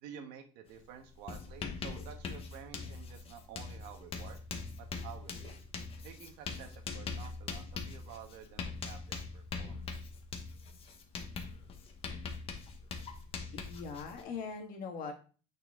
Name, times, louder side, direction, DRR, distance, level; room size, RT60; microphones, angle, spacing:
voice 1, 0.0-4.4 4.8-5.6 6.0-9.8, right 8 dB, 75° right, 6 dB, 1.3 m, -51 dB
Writing, 0.7-0.8 1.1-14.2, left 4 dB, 30° left, 1.3 m, -42 dB
voice 2, 13.5-15.1, left 5 dB, 50° left, 3 dB, 1.7 m, -41 dB
8.9 x 4.4 x 3.7 m, 0.36 s
cardioid pair, 155°, 18 cm